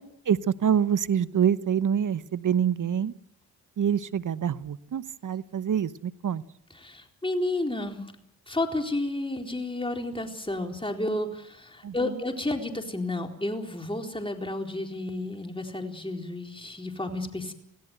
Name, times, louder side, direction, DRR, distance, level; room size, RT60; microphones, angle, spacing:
voice 1, 0.3-3.1 3.8-6.4 11.8-11.9, right 8 dB, 50° right, 16 dB, 1.0 m, -26 dB
voice 2, 6.7-8.1 8.5-17.5, left 2 dB, 15° left, 3 dB, 4.1 m, -31 dB
25.0 x 16.5 x 7.9 m, 0.76 s
hypercardioid pair, 40°, 41 cm